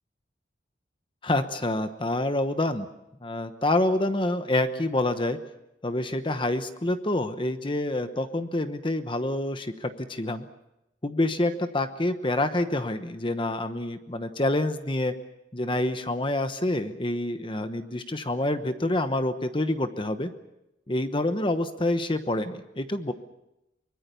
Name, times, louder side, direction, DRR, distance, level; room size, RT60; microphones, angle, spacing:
voice 1, 1.2-2.9 3.2-5.4 5.8-10.5 11.0-15.1 15.5-20.3 20.9-23.1, left 1 dB, 25° left, 9 dB, 1.0 m, -27 dB
24.0 x 21.5 x 6.9 m, 0.91 s
head